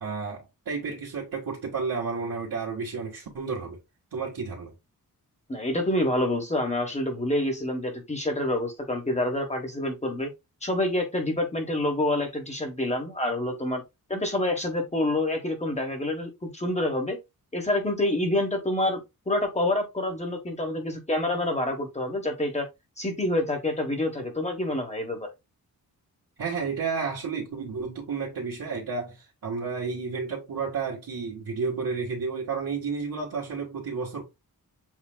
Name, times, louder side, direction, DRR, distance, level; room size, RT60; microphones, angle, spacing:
voice 1, 0.0-3.8 4.1-4.7 26.4-34.2, right 5 dB, 70° right, 1.8 m, -31 dB
voice 2, 5.5-10.3 10.6-13.8 14.1-17.2 17.5-22.7 23.0-25.3, left 1 dB, 20° left, 1.1 m, -27 dB
7.3 x 3.3 x 2.2 m
wide cardioid pair, 175°, 36 cm